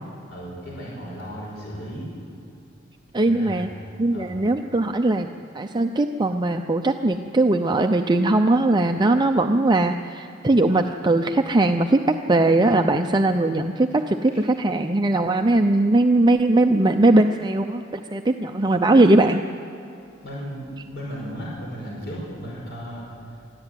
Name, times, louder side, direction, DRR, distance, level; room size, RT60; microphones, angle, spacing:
voice 1, 0.3-2.1 3.2-3.7 4.1-4.3 20.2-23.4, equal, 60° left, -4 dB, 5.3 m, -35 dB
voice 2, 3.1-3.7 4.0-5.3 5.5-19.4, right 2 dB, 20° right, 5 dB, 0.6 m, -20 dB
23.5 x 14.0 x 9.2 m, 2.7 s
head